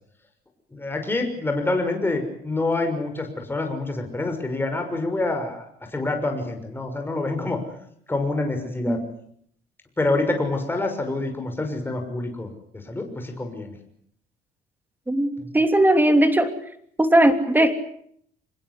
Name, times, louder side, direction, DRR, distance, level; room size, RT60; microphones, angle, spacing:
voice 1, 0.7-5.7 5.9-7.6 8.1-9.0 10.0-13.8, left 2 dB, 10° left, 4 dB, 6.1 m, -26 dB
voice 2, 15.1-16.5 17.0-17.7, right 1 dB, 10° right, 8 dB, 3.0 m, -18 dB
25.5 x 21.5 x 8.4 m, 0.67 s
cardioid pair, 110°, 17 cm